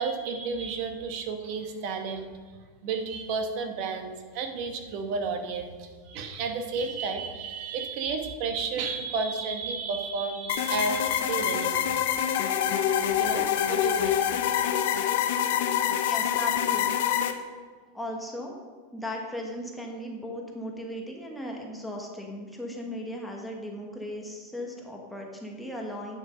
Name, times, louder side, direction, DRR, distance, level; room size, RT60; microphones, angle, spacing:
voice 1, 0.0-2.3 2.8-11.9 13.2-14.7, right 4 dB, 50° right, 5 dB, 1.3 m, -32 dB
sound 1, 10.5-17.3, left 9 dB, 70° left, 0.8 m, -26 dB
voice 2, 16.0-17.0 17.9-18.6 18.9-26.2, equal, 5° left, -1 dB, 1.4 m, -37 dB
9.5 x 6.2 x 5.1 m, 1.5 s
supercardioid pair, 140°, 0 cm